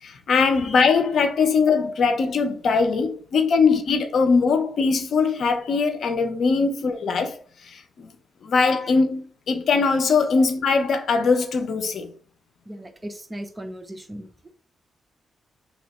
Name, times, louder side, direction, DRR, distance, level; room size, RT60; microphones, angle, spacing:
voice 1, 0.0-7.4 7.6-8.1 8.4-12.1, left 4 dB, 70° left, 0.6 m, -21 dB
voice 2, 12.7-14.3, right 1 dB, 20° right, 0.8 m, -37 dB
3.0 x 3.0 x 4.2 m
cardioid pair, 70°, 0 cm